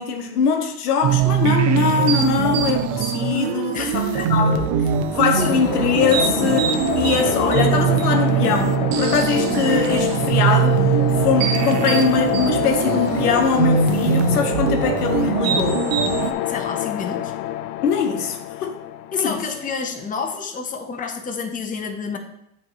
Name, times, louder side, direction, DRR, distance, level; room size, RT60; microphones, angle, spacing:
voice 1, 0.0-4.7 5.1-10.8 11.2-15.8 17.8-18.8 19.1-19.4, left 6 dB, 85° left, 0.9 m, -22 dB
sound 1, 1.0-16.3, right 8 dB, 55° right, 0.7 m, -21 dB
voice 2, 3.7-4.4 5.4-5.6 16.5-17.3 19.1-22.2, left 5 dB, 20° left, 0.8 m, -29 dB
sound 2, 5.3-20.0, left 13 dB, 60° left, 0.5 m, -27 dB
7.7 x 3.3 x 4.1 m
hypercardioid pair, 95°, 45 cm